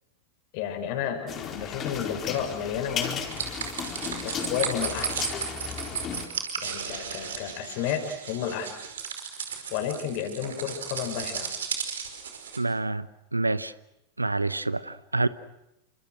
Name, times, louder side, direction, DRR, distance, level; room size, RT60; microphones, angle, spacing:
voice 1, 0.5-3.4 4.2-5.3 6.6-8.8 9.7-11.5, left 9 dB, 45° left, 5.7 m, -32 dB
sound 1, 1.3-6.3, left 7 dB, 30° left, 4.5 m, -34 dB
sound 2, 3.3-12.6, right 7 dB, 65° right, 5.1 m, -35 dB
voice 2, 12.6-13.1 13.3-13.7 14.2-15.3, right 2 dB, 85° right, 1.0 m, -27 dB
29.5 x 26.0 x 6.4 m
figure-of-eight pair, 90°, 0 cm